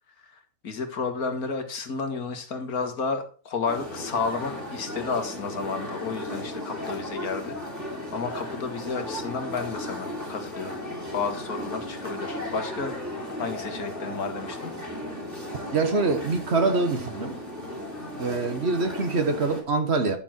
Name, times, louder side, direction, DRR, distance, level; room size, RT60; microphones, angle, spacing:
voice 1, 0.2-7.6 8.1-10.8 11.1-12.9 13.4-14.7, left 4 dB, 85° left, 2.1 m, -31 dB
sound 1, 3.7-19.6, left 1 dB, 10° right, 2.7 m, -35 dB
voice 2, 15.7-17.4 18.2-20.2, right 3 dB, 50° right, 1.5 m, -25 dB
11.0 x 7.2 x 4.4 m
omnidirectional pair, 1.5 m